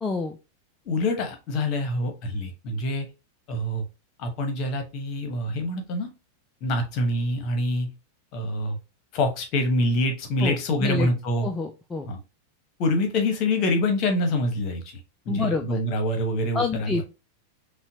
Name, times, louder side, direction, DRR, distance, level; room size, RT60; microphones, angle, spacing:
voice 1, 0.0-0.4 10.4-10.6 10.8-11.1 11.4-12.1 15.3-15.8 16.5-17.0, left 4 dB, 15° left, 4 dB, 0.4 m, -27 dB
voice 2, 0.8-3.1 3.5-3.8 4.2-6.1 6.6-7.9 8.3-8.8 9.1-11.5 12.1-12.2 12.8-15.0 15.3-17.0, left 1 dB, 40° left, 5 dB, 1.0 m, -25 dB
5.5 x 2.2 x 2.7 m, 0.28 s
figure-of-eight pair, 90°, 0 cm